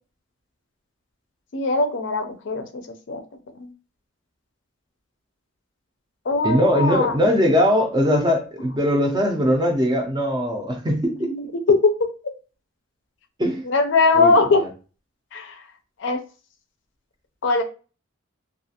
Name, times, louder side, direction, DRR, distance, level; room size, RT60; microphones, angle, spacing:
voice 1, 1.5-2.8 3.1-3.2 3.6-3.7 6.3-7.1 11.2-12.1 13.7-14.6 15.3-15.6 16.0-16.2 17.4-17.6, left 3 dB, 55° left, 6 dB, 0.4 m, -20 dB
voice 2, 6.4-11.3 13.4-13.7 14.2-14.7, equal, 20° right, 2 dB, 0.4 m, -21 dB
2.4 x 2.3 x 2.8 m, 0.34 s
head